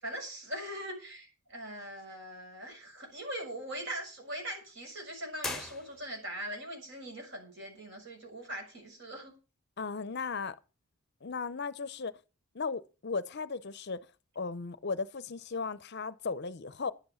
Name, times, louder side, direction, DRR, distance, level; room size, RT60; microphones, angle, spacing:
voice 1, 0.0-9.3, right 1 dB, 55° right, 6.8 m, -41 dB
sound 1, 5.4-6.4, left 2 dB, ahead, 1.1 m, -40 dB
voice 2, 9.8-10.6 11.2-12.1 12.5-14.0 14.4-16.9, left 4 dB, 50° left, 0.6 m, -36 dB
11.0 x 8.0 x 6.9 m
head